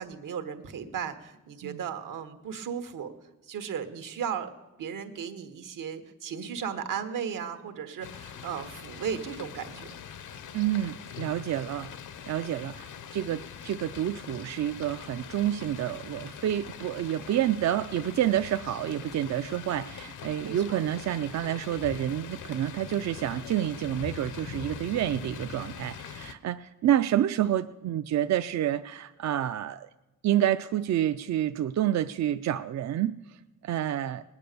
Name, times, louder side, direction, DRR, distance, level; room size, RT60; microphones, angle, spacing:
voice 1, 0.0-3.1 3.4-4.5 4.8-9.9 20.4-20.8, right 7 dB, 85° right, 8 dB, 1.5 m, -35 dB
sound 1, 8.0-26.3, left 8 dB, 75° left, 0.9 m, -43 dB
voice 2, 10.5-11.9 12.3-29.9 30.2-34.2, right 11 dB, 60° right, 9 dB, 0.5 m, -29 dB
19.0 x 9.8 x 6.8 m, 1.0 s
wide cardioid pair, 160°, 31 cm